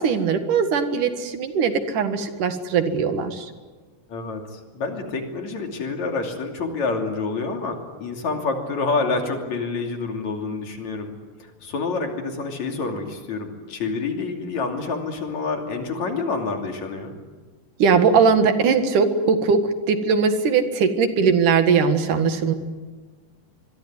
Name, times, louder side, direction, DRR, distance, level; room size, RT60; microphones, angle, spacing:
voice 1, 0.0-3.5 17.8-19.6 19.9-22.5, right 5 dB, 75° right, 8 dB, 3.3 m, -20 dB
voice 2, 4.1-11.1 11.6-17.1, left 4 dB, 60° left, 3 dB, 4.1 m, -27 dB
25.0 x 22.0 x 9.6 m, 1.4 s
omnidirectional pair, 3.7 m